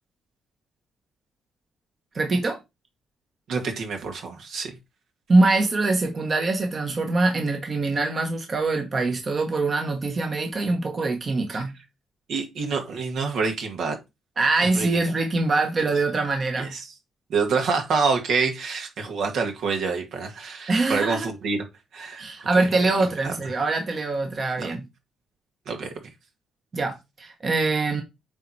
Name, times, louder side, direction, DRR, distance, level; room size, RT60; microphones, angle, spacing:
voice 1, 2.1-2.6 5.3-11.7 14.4-16.7 20.7-21.3 22.2-24.8 26.7-28.0, right 3 dB, 40° right, 1.2 m, -23 dB
voice 2, 3.5-4.7 11.5-11.6 12.3-14.0 14.6-15.0 16.6-16.9 17.3-21.6 21.9-22.3 22.5-22.7 23.2-23.3 24.6-24.7 25.7-25.9, right 4 dB, 70° right, 1.9 m, -27 dB
8.9 x 3.2 x 4.2 m
cardioid pair, 90°, 0 cm